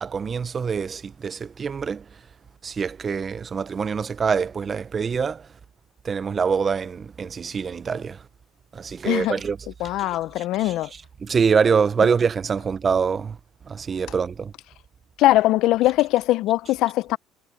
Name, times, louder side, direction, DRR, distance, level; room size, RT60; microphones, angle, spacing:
voice 1, 0.0-2.0 2.6-5.4 6.0-8.2 8.7-9.6 10.4-10.7 11.2-13.4 13.7-14.5, right 6 dB, 20° right, 0.5 m, -24 dB
voice 2, 9.0-9.4 9.8-10.9 15.2-17.2, left 16 dB, 55° left, 0.4 m, -21 dB
cardioid pair, 165°, 0 cm